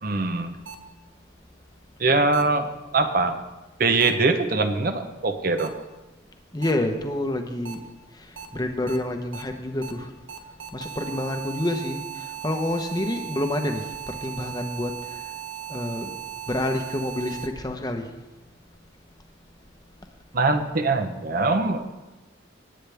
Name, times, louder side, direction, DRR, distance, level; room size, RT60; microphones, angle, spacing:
voice 1, 0.0-0.5 2.0-3.4 3.8-5.7 20.3-21.9, right 3 dB, 45° right, 8 dB, 0.8 m, -23 dB
sound 1, 0.7-0.8 2.3-2.4 4.0-4.1 5.6-5.7 6.6-6.7 7.7-7.8 8.4-8.5 8.9-9.0 9.3-9.4 9.8-9.9 10.3-17.5, right 9 dB, 80° right, 1.2 m, -37 dB
voice 2, 6.5-7.8 8.1-10.1 10.7-15.2 15.7-16.1 16.5-18.1, left 1 dB, 20° left, 5 dB, 0.9 m, -28 dB
18.0 x 9.1 x 3.5 m, 1.1 s
head